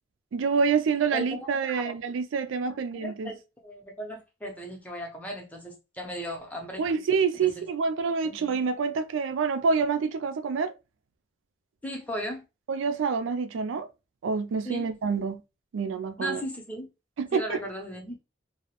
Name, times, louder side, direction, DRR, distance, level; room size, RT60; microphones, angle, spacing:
voice 1, 0.3-3.3 6.8-10.7 12.7-13.9 14.2-15.4 15.7-16.4 17.2-17.6, right 5 dB, 80° right, 0.4 m, -27 dB
voice 2, 2.9-6.8 7.3-7.7 8.2-8.5 11.8-12.4 14.6-14.9 16.2-16.9 17.3-18.2, equal, 10° left, 0.6 m, -36 dB
2.2 x 2.0 x 2.8 m
head